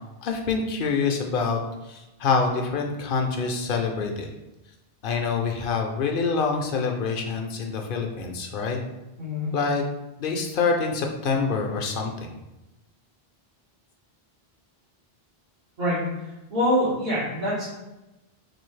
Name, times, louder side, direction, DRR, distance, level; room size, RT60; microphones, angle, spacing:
voice 1, 0.2-1.6 1.9-4.3 5.0-8.8 9.5-9.8 10.2-12.3, left 4 dB, 65° left, 3 dB, 0.7 m, -26 dB
voice 2, 9.2-9.5 15.8-16.0 16.5-17.7, equal, 70° right, -12 dB, 1.6 m, -24 dB
4.0 x 2.6 x 3.1 m, 1.0 s
omnidirectional pair, 1.0 m